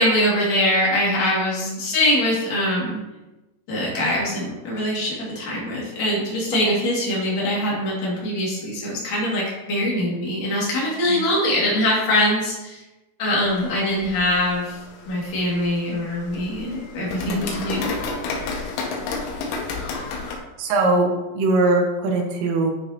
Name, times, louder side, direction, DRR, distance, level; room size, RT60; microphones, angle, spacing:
voice 1, 0.0-3.0 3.7-12.8 13.2-14.8 15.1-17.9, left 1 dB, 40° left, -5 dB, 2.9 m, -23 dB
sound 1, 13.4-20.4, left 4 dB, 90° left, 3.8 m, -32 dB
voice 2, 20.6-22.7, right 2 dB, 80° right, 1 dB, 3.6 m, -21 dB
10.5 x 6.6 x 3.0 m, 1.0 s
omnidirectional pair, 5.8 m